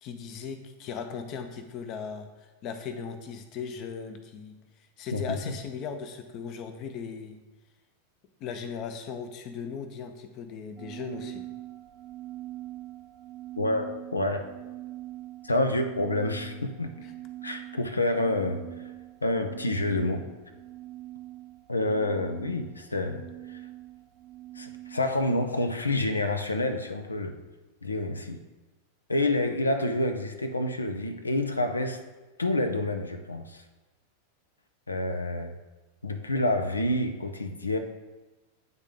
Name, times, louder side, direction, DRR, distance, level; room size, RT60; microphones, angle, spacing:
voice 1, 0.0-4.6 5.0-7.4 8.4-11.4 17.0-17.1, left 6 dB, 40° left, 8 dB, 0.7 m, -38 dB
sound 1, 10.8-25.7, right 15 dB, 35° right, 0.6 m, -43 dB
voice 2, 13.6-14.4 15.4-16.9 17.4-18.6 19.2-20.2 21.7-23.2 23.5-23.6 24.6-27.3 27.8-28.4 29.1-32.0 32.4-33.6 34.9-35.6 36.0-37.8, left 2 dB, 80° left, 7 dB, 0.5 m, -28 dB
9.3 x 3.7 x 3.7 m, 1.2 s
figure-of-eight pair, 90°, 0 cm